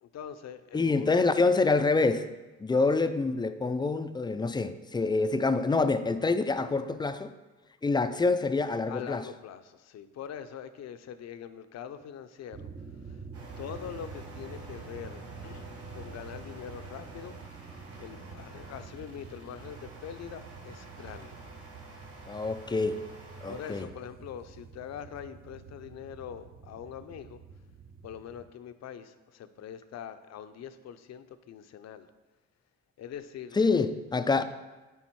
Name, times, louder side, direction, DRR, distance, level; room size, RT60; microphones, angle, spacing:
voice 1, 0.0-1.1 8.9-12.7 13.0-13.2 13.6-17.4 18.0-21.4 23.5-27.4 28.0-32.1 33.0-33.6, left 8 dB, 60° left, 11 dB, 0.6 m, -43 dB
voice 2, 0.7-2.3 2.6-7.3 7.8-9.2 22.3-23.0 23.4-23.9 33.6-34.4, left 3 dB, 15° left, 11 dB, 0.4 m, -26 dB
sound 1, 12.5-28.5, right 5 dB, 30° right, 0.6 m, -47 dB
sound 2, 13.3-23.8, right 1 dB, 50° right, 1.9 m, -50 dB
10.0 x 3.5 x 4.6 m, 1.2 s
cardioid pair, 90°, 30 cm